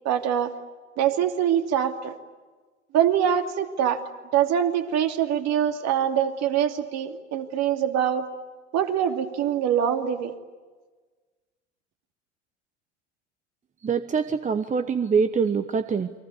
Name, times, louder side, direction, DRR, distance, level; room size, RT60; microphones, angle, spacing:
voice 1, 0.0-0.5 1.0-2.2 2.9-4.0 4.3-8.3 8.7-10.3, right 9 dB, 45° right, 5 dB, 2.7 m, -24 dB
voice 2, 13.8-16.1, right 5 dB, 20° right, 10 dB, 1.1 m, -24 dB
29.5 x 23.5 x 8.2 m, 1.3 s
figure-of-eight pair, 75°, 36 cm